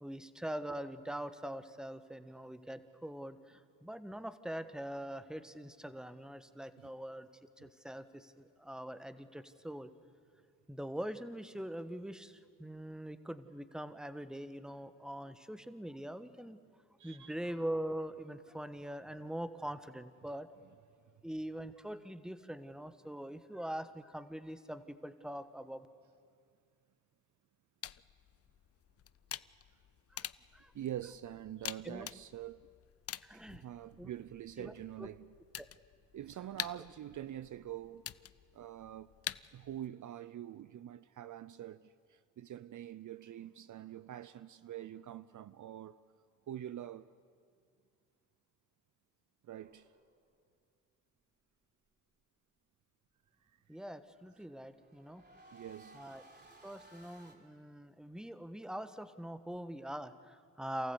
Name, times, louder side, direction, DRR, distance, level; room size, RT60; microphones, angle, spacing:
voice 1, 0.0-7.3 7.6-9.9 10.7-16.6 17.0-20.5 21.2-25.9 30.1-30.3 30.5-30.7 31.8-32.1 33.2-33.6 34.0-34.1 34.6-34.7 35.0-35.1 35.6-35.7 53.7-55.2 55.9-56.2 56.6-60.9, right 1 dB, ahead, 1.2 m, -43 dB
voice 2, 17.0-17.3 30.7-32.7 33.3-35.3 36.1-38.1 38.5-39.2 39.5-46.0 46.5-47.1 49.4-49.9 55.5-56.0, right 11 dB, 55° right, 0.6 m, -45 dB
sound 1, 27.8-39.9, left 10 dB, 40° left, 0.5 m, -48 dB
sound 2, 49.6-50.5 54.2-57.4, right 2 dB, 25° right, 4.1 m, -60 dB
27.5 x 14.5 x 8.2 m
supercardioid pair, 55°, 37 cm